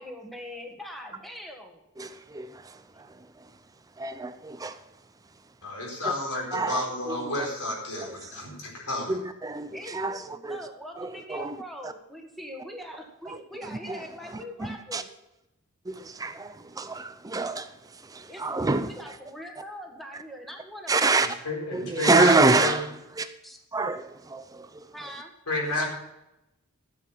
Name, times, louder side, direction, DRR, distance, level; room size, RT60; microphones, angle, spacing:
voice 1, 0.0-1.8 9.7-15.1 16.8-17.0 18.2-21.1 23.4-23.6 24.9-25.3, equal, ahead, 1.5 m, -42 dB
voice 2, 2.0-3.5 4.0-4.8 6.0-6.1 6.5-7.5 8.0-8.3 9.1-10.7 11.0-11.6 11.8-11.9 13.3-13.4 13.6-14.0 14.6-15.0 15.9-19.2 20.9-21.3 21.7-22.9 23.2-23.3 23.7-24.9, right 3 dB, 15° right, 0.5 m, -27 dB
voice 3, 5.6-9.2 21.4-22.8 25.5-25.9, left 1 dB, 90° left, 4.2 m, -30 dB
13.0 x 7.6 x 5.5 m
head